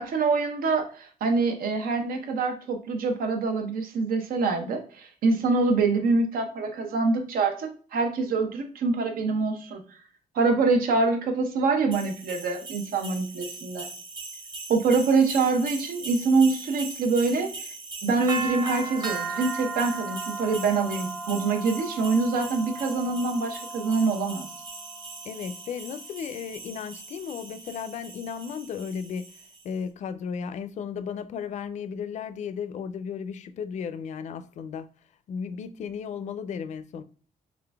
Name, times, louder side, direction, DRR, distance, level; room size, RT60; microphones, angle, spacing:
voice 1, 0.0-9.8 10.3-13.9 14.7-17.7 18.0-24.5, right 4 dB, 90° right, 0.9 m, -25 dB
sound 1, 11.9-29.6, right 3 dB, 30° right, 0.9 m, -37 dB
voice 2, 25.2-29.3 29.6-34.9 35.3-37.0, left 7 dB, 55° left, 0.4 m, -35 dB
3.8 x 3.6 x 3.4 m
wide cardioid pair, 165°, 14 cm